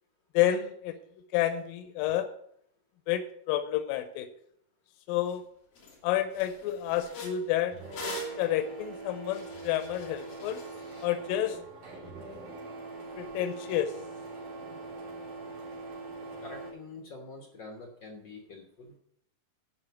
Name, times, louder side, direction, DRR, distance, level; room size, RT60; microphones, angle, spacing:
voice 1, 0.3-1.0 1.3-2.3 3.1-4.3 5.1-5.4 6.0-10.6 11.0-11.6 13.2-13.9, left 11 dB, 90° left, 10 dB, 2.4 m, -30 dB
sound 1, 5.3-5.4 5.8-6.0 6.3-11.1, equal, 50° left, 2.3 m, -43 dB
Printer, 7.7-16.7, right 3 dB, 65° right, 4.8 m, -43 dB
voice 2, 16.4-19.0, left 3 dB, 70° left, 2 dB, 1.1 m, -46 dB
9.8 x 5.5 x 8.1 m, 0.70 s
omnidirectional pair, 4.0 m